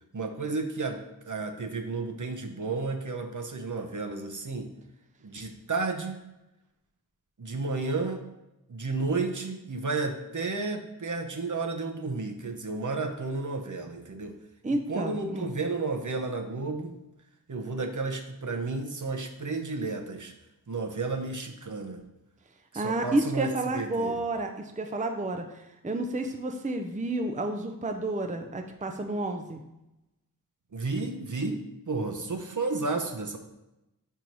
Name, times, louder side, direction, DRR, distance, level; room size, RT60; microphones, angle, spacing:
voice 1, 0.1-1.0 1.3-4.7 5.2-6.2 7.4-8.2 8.7-14.4 14.7-17.0 17.5-20.3 20.7-22.0 22.7-24.2 30.7-33.4, right 3 dB, 55° right, 4 dB, 0.8 m, -32 dB
voice 2, 14.6-15.5 22.7-29.6, right 2 dB, 20° right, 5 dB, 0.5 m, -30 dB
4.7 x 4.5 x 5.2 m, 0.93 s
wide cardioid pair, 55°, 36 cm